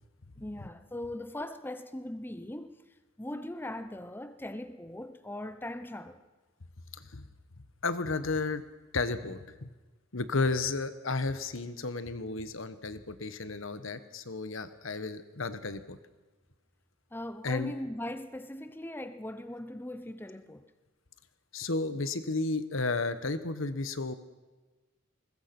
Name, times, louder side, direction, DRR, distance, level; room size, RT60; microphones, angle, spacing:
voice 1, 0.4-2.8 3.2-6.2 17.1-20.7, left 1 dB, 10° left, 0.8 m, -40 dB
voice 2, 7.8-8.6 8.9-9.7 10.1-16.0 17.4-17.7 21.5-24.1, left 3 dB, 75° left, 1.3 m, -33 dB
21.5 x 20.0 x 6.1 m
head